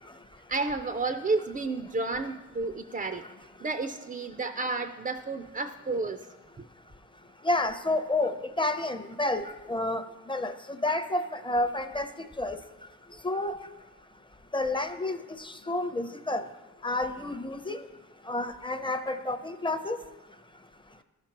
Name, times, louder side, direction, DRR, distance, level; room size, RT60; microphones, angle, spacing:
voice 1, 0.5-3.2 3.6-6.2 6.6-6.7, right 3 dB, 30° right, 8 dB, 0.4 m, -31 dB
voice 2, 7.4-9.4 9.7-10.0 10.3-10.5 10.8-12.1 12.4-12.6 13.2-13.5 14.5-16.4 16.8-17.8 18.3-20.0, left 2 dB, 15° left, 8 dB, 0.7 m, -29 dB
14.0 x 5.9 x 2.9 m, 1.1 s
cardioid pair, 50°, 31 cm